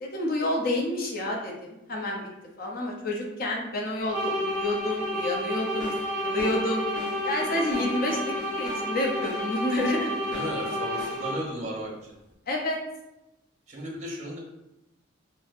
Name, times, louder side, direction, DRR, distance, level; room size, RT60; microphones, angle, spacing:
voice 1, 0.0-2.2 2.6-5.9 6.2-6.8 7.1-10.1 12.5-12.8, left 1 dB, 50° left, 0 dB, 0.6 m, -29 dB
sound 1, 4.1-11.6, equal, 20° right, 1.1 m, -31 dB
sound 2, 5.6-11.3, left 2 dB, 20° left, 0.9 m, -42 dB
voice 2, 10.3-11.9 13.7-14.4, right 1 dB, 35° right, -2 dB, 0.7 m, -35 dB
4.2 x 2.0 x 2.5 m, 0.92 s
head